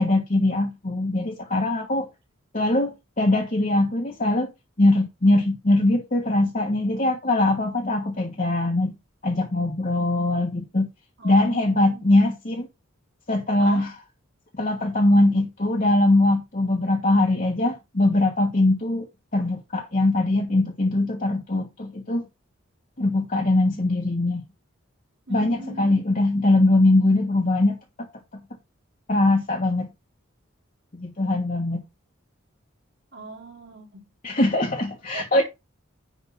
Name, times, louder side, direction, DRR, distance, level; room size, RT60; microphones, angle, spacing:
voice 1, 0.0-2.1 2.5-4.5 4.8-8.9 9.2-10.9 11.2-12.7 13.3-14.0 14.6-19.1 19.3-22.2 23.0-24.4 25.3-27.8 29.1-29.9 30.9-31.8 34.2-35.4, left 2 dB, 40° left, 1.3 m, -21 dB
voice 2, 11.2-12.1 13.6-13.8 25.3-26.0 33.1-34.0 35.1-35.4, right 2 dB, 60° right, 3.3 m, -40 dB
10.0 x 3.5 x 5.6 m
head